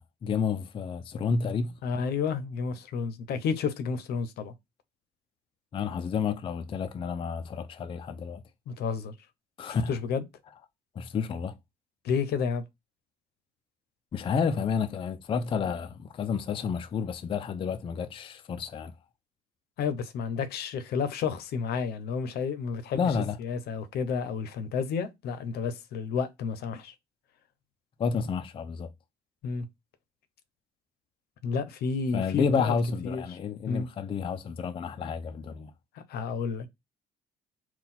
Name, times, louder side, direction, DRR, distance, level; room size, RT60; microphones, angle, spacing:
voice 1, 0.0-1.7 5.7-8.4 9.6-9.9 11.0-11.6 14.1-18.9 22.9-23.4 28.0-28.9 32.1-35.7, left 6 dB, 30° left, 0.4 m, -30 dB
voice 2, 1.8-4.5 8.7-9.1 9.9-10.2 12.0-12.6 19.8-26.9 29.4-29.7 31.4-32.7 33.0-33.4 33.7-33.9 36.1-36.7, left 6 dB, 70° left, 0.7 m, -31 dB
3.9 x 2.3 x 4.0 m
cardioid pair, 110°, 17 cm